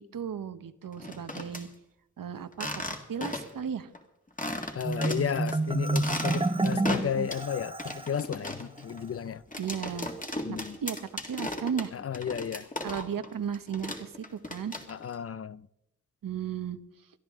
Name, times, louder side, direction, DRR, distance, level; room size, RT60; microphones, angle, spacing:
voice 1, 0.0-1.7 2.2-2.7 3.1-3.9 9.6-10.1 10.5-11.9 12.8-14.7 16.2-16.8, right 8 dB, 80° right, 1.0 m, -35 dB
sound 1, 0.9-1.6 2.5-3.6 3.9-4.0 4.4-5.5 5.9-7.5 7.8-13.3 13.5-15.1, left 1 dB, 25° left, 2.0 m, -36 dB
voice 2, 4.7-9.4 10.4-10.8 11.9-12.7 14.9-15.7, left 8 dB, 45° left, 0.5 m, -33 dB
Marimba xylophone, 4.8-8.2, right 2 dB, 15° right, 0.8 m, -29 dB
22.5 x 13.5 x 3.7 m
wide cardioid pair, 100°, 33 cm